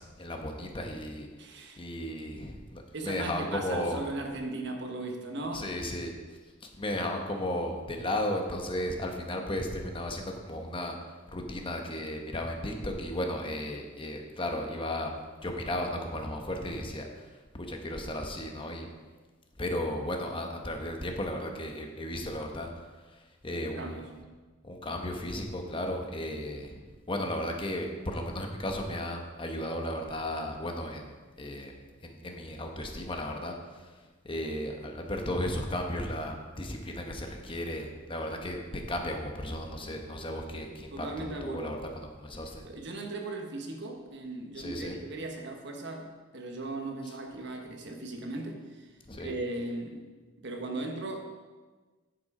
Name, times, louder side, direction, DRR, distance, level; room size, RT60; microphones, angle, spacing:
voice 1, 0.0-1.3 1.8-4.0 5.5-6.1 6.6-11.0 11.3-18.9 19.6-24.2 24.6-31.7 32.0-42.6 44.6-45.0 47.0-47.1 49.1-49.3, left 1 dB, 25° left, 3 dB, 1.0 m, -35 dB
voice 2, 1.4-1.8 2.9-5.7 23.6-24.1 40.9-41.7 42.6-48.9 49.2-50.0 50.4-51.2, right 2 dB, 60° right, 3 dB, 1.2 m, -37 dB
9.0 x 7.0 x 4.9 m, 1.3 s
head